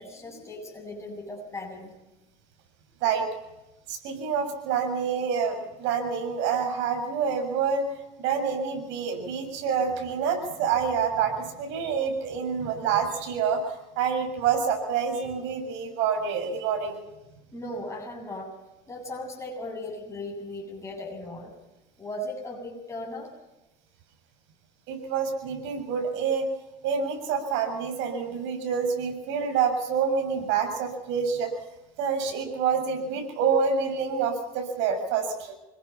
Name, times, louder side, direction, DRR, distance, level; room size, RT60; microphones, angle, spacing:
voice 1, 0.0-1.9 9.6-9.9 17.5-18.5 18.9-21.5 22.0-23.3, left 1 dB, 15° left, -1 dB, 8.0 m, -37 dB
voice 2, 3.9-7.8 8.2-17.0 24.9-26.5 26.8-31.5 32.0-35.5, right 6 dB, 75° right, 5 dB, 7.3 m, -27 dB
27.0 x 21.5 x 5.9 m, 0.98 s
supercardioid pair, 95°, 19 cm